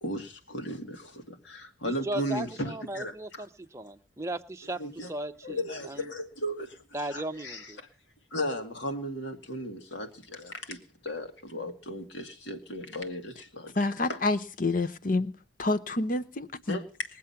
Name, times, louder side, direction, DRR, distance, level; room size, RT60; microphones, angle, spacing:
voice 1, 0.0-3.4 4.8-5.1 5.4-6.8 7.1-7.7 8.3-13.7 14.1-14.2 16.7-16.8, equal, 75° left, 2.2 m, -36 dB
voice 2, 1.8-6.1 6.9-7.8, right 1 dB, 15° right, 0.8 m, -37 dB
voice 3, 13.7-15.3 15.6-16.8, left 2 dB, 45° left, 0.8 m, -28 dB
21.0 x 7.7 x 5.8 m
head